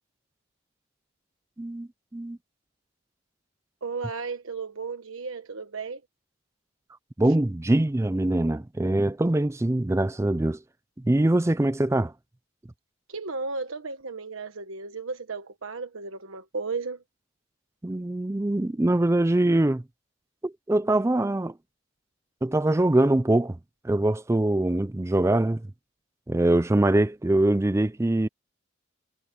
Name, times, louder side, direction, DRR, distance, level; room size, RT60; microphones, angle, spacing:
voice 1, 1.6-2.4 7.2-10.6 11.0-12.1 17.8-19.8 20.4-21.5 22.4-23.6 23.8-25.6 26.3-28.3, right 1 dB, 15° right, 0.4 m, -23 dB
voice 2, 3.8-6.0 13.1-17.0, right 4 dB, 80° right, 1.3 m, -34 dB
head